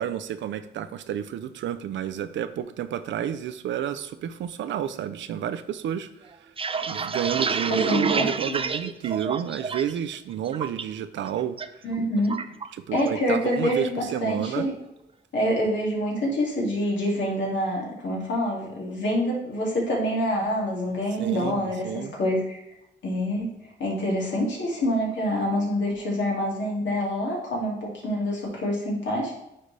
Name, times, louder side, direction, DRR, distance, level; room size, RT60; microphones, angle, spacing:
voice 1, 0.0-6.1 6.4-6.5 6.8-11.8 12.7-14.7 21.2-22.1, right 10 dB, 85° right, 12 dB, 0.5 m, -30 dB
sound 1, 6.3-10.0 10.3-10.8 11.2-11.7 11.9-13.2 13.5-13.8 14.1-14.6, right 5 dB, 30° right, 0.5 m, -29 dB
voice 2, 7.7-8.6 11.8-12.4 12.9-14.7 15.3-22.6 23.0-23.5 23.8-29.4, equal, 80° left, -3 dB, 2.3 m, -26 dB
9.7 x 3.9 x 3.3 m, 0.85 s
cardioid pair, 75°, 19 cm